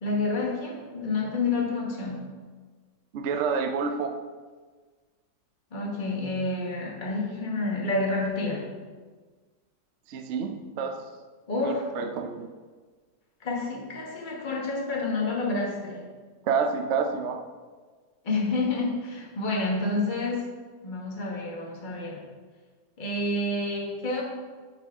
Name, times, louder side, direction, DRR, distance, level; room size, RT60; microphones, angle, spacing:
voice 1, 0.0-2.3 5.7-8.7 11.5-11.9 13.4-16.0 18.2-20.5 20.8-22.2 23.0-24.2, left 2 dB, 30° left, -2 dB, 1.3 m, -29 dB
voice 2, 3.1-4.1 10.1-11.0 11.6-12.5 16.4-17.4, right 5 dB, 70° right, 4 dB, 0.6 m, -28 dB
11.5 x 4.4 x 3.6 m, 1.4 s
omnidirectional pair, 1.9 m